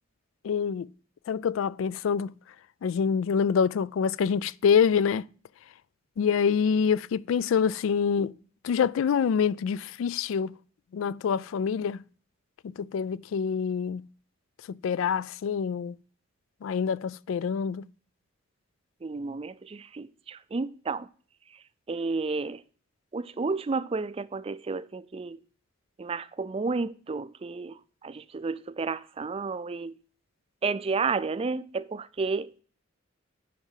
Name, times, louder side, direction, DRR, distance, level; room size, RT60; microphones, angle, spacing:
voice 1, 0.4-0.9 1.3-2.3 2.8-5.2 6.2-8.4 8.6-10.6 10.9-12.0 12.6-14.1 14.7-16.0 16.6-17.9, left 6 dB, 70° left, 0.3 m, -26 dB
voice 2, 19.0-21.1 21.9-22.6 23.1-25.4 26.0-30.0 30.6-32.6, right 4 dB, 30° right, 0.4 m, -31 dB
9.4 x 5.4 x 5.6 m
head